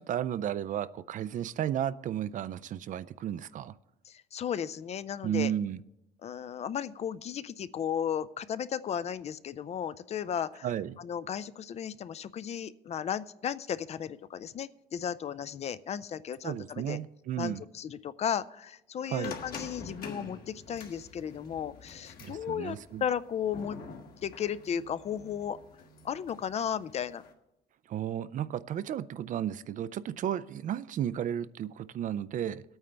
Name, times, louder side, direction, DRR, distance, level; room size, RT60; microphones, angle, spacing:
voice 1, 0.0-3.7 5.2-5.8 10.6-11.0 16.4-17.6 19.1-19.4 22.2-23.0 27.9-32.6, right 10 dB, 50° right, 16 dB, 0.4 m, -33 dB
voice 2, 4.1-5.5 6.2-10.7 11.0-17.0 17.4-23.8 24.2-25.6 26.0-27.2, left 8 dB, 40° left, 15 dB, 0.4 m, -35 dB
sound 1, 19.2-27.3, left 4 dB, 60° left, 1.6 m, -47 dB
20.0 x 8.8 x 3.4 m, 0.90 s
cardioid pair, 110°, 17 cm